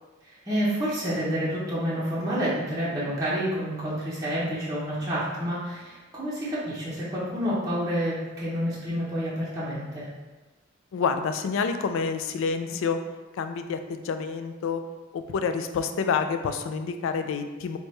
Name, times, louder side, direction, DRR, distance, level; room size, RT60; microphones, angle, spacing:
voice 1, 0.2-10.1, equal, 15° right, -9 dB, 0.7 m, -29 dB
voice 2, 10.9-13.0 13.4-14.8 15.1-17.8, left 5 dB, 65° left, 8 dB, 0.3 m, -28 dB
4.4 x 2.2 x 3.1 m, 1.2 s
head